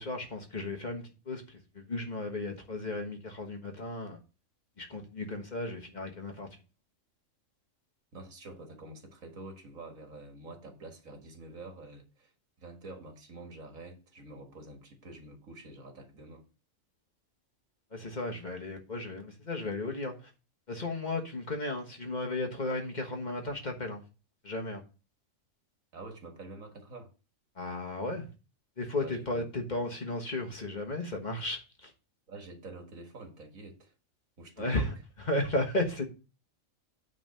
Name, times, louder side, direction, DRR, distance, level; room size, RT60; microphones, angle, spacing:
voice 1, 0.0-4.2 4.8-6.5 17.9-20.1 20.7-24.0 24.4-24.8 27.6-28.3 28.8-31.9 34.6-34.9 35.3-36.1, left 2 dB, 35° left, 1.4 m, -34 dB
voice 2, 8.1-12.3 12.6-16.4 25.9-27.1 29.0-29.5 32.3-33.9 34.4-34.9, right 2 dB, 85° right, 2.2 m, -47 dB
9.2 x 3.9 x 6.6 m
omnidirectional pair, 1.4 m